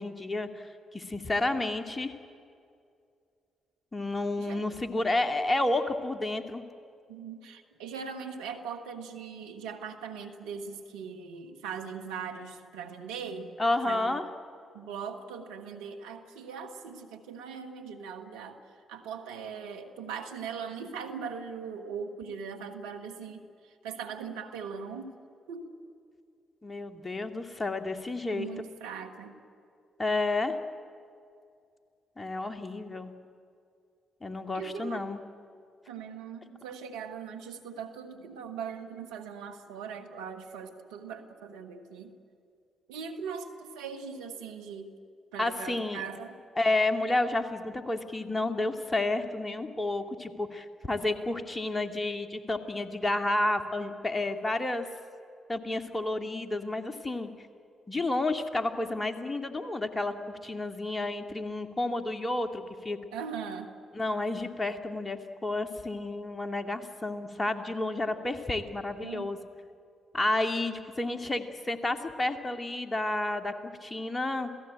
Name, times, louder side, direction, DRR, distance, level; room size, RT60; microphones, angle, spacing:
voice 1, 0.0-2.1 3.9-6.6 13.6-14.2 26.6-28.5 30.0-30.6 32.2-33.1 34.2-35.2 45.4-46.0 46.6-54.9 55.5-57.3 57.9-63.0 63.9-69.4 70.1-74.5, left 2 dB, 25° left, 7 dB, 2.2 m, -31 dB
voice 2, 7.1-13.6 13.8-14.3 14.7-18.6 18.9-25.2 25.5-25.7 28.3-29.4 34.5-35.0 35.9-42.1 42.9-44.9 45.3-46.4 63.1-63.7 69.0-69.3, right 6 dB, 80° right, 5 dB, 1.5 m, -40 dB
27.5 x 17.0 x 8.8 m, 2.4 s
hypercardioid pair, 40°, 0 cm